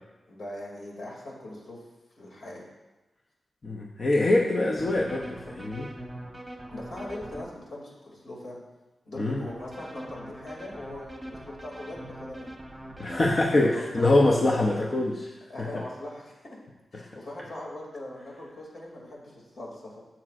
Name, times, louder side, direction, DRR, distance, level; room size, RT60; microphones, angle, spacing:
voice 1, 0.3-1.8 2.2-2.6 4.7-4.8 6.7-8.6 9.1-12.5 13.0-14.7 15.5-16.6 16.9-20.0, left 1 dB, 70° left, -3 dB, 2.6 m, -40 dB
voice 2, 3.6-5.9 9.2-9.5 13.0-15.3 15.6-15.7 16.9-17.0, left 2 dB, 40° left, -1 dB, 0.7 m, -24 dB
sound 1, 4.8-7.4 9.5-13.4, right 1 dB, 5° right, 1.2 m, -42 dB
12.5 x 7.5 x 2.5 m, 1.1 s
wide cardioid pair, 145°, 0 cm